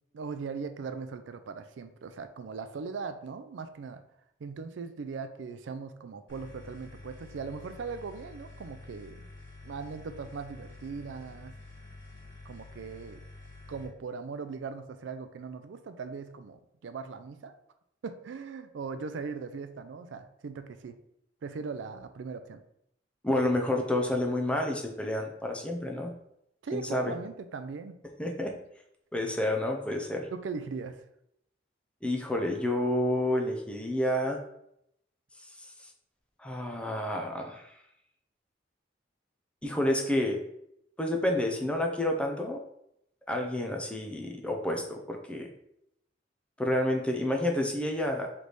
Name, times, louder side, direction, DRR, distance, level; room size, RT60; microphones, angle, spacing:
voice 1, 0.1-4.0 4.4-9.2 9.6-11.6 12.4-13.2 13.7-17.5 18.0-21.0 21.4-22.6 26.6-28.0 30.3-31.0, right 5 dB, 80° right, 10 dB, 0.4 m, -39 dB
sound 1, 6.3-13.9, left 2 dB, 75° left, 1.5 m, -49 dB
voice 2, 23.2-26.1 26.7-27.1 28.2-28.5 29.1-30.3 32.0-34.4 35.6-35.7 36.4-37.7 39.6-40.4 41.0-42.6 43.3-45.5 46.6-48.3, left 1 dB, 5° left, 2 dB, 0.5 m, -29 dB
3.3 x 3.1 x 4.0 m, 0.77 s
head